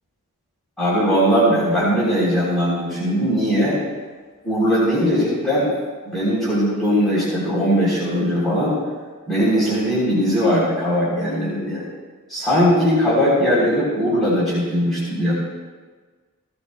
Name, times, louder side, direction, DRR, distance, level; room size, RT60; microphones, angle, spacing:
voice 1, 0.8-3.8 4.4-5.7 6.0-8.8 9.3-11.8 12.3-15.3, equal, ahead, -11 dB, 3.3 m, -19 dB
16.5 x 14.0 x 2.2 m, 1.4 s
head